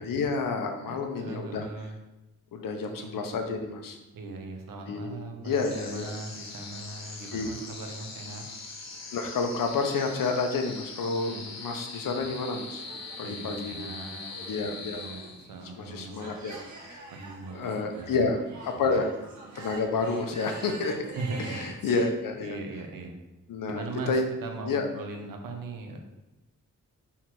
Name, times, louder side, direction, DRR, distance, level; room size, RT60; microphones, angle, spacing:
voice 1, 0.0-1.6 2.5-4.0 4.9-6.1 7.3-7.5 9.1-12.8 13.2-13.8 14.5-15.0 15.8-16.6 16.9-17.0 17.5-19.1 19.5-21.0 21.4-22.6 23.5-24.3 24.6-24.8, left 4 dB, 80° left, 5 dB, 0.9 m, -30 dB
voice 2, 0.9-2.0 2.9-3.3 4.1-8.4 11.3-11.5 13.2-14.3 14.6-16.4 17.1-18.3 18.7-19.0 21.1-21.6 22.4-23.1 23.7-26.0, right 3 dB, 85° right, 3 dB, 1.1 m, -39 dB
sound 1, 5.5-15.7, left 3 dB, 55° left, 1.2 m, -42 dB
sound 2, 12.1-22.0, right 3 dB, 60° right, 1.7 m, -46 dB
6.0 x 4.2 x 4.7 m, 1.0 s
cardioid pair, 80°, 33 cm